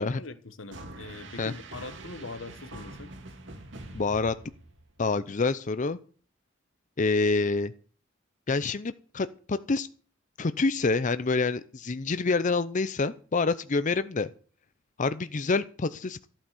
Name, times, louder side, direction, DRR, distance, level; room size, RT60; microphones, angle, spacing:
voice 1, 0.0-3.1, left 3 dB, 80° left, 1.4 m, -42 dB
sound 1, 0.7-5.0, right 2 dB, 65° right, 3.1 m, -44 dB
voice 2, 3.9-4.3 5.0-6.0 7.0-7.7 8.5-9.9 10.4-14.3 15.0-16.3, left 3 dB, 40° left, 0.6 m, -27 dB
14.5 x 9.0 x 6.7 m
head